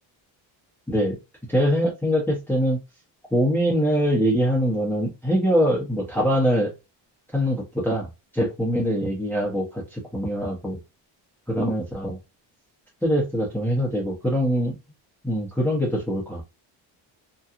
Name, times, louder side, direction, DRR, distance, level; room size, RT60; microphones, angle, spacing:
voice 1, 0.9-1.2 1.5-2.8 3.3-6.7 7.3-8.1 8.3-10.8 11.5-12.2 13.0-14.8 15.2-16.4, equal, 5° left, 0.9 m, -23 dB
2.9 x 2.3 x 2.4 m
cardioid pair, 90°, 48 cm